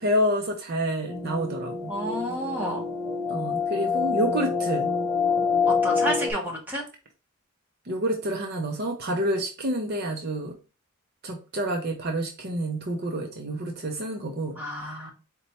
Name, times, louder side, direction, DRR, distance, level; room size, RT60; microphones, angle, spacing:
voice 1, 0.0-1.9 3.3-4.9 7.9-10.5 11.2-14.6 14.8-15.0, equal, 45° right, 2 dB, 0.5 m, -28 dB
sound 1, 1.1-6.3, left 5 dB, 20° left, 0.7 m, -26 dB
voice 2, 1.9-2.9 5.7-6.8 14.6-15.1, equal, 10° right, -3 dB, 1.0 m, -30 dB
4.2 x 2.2 x 4.0 m, 0.34 s
head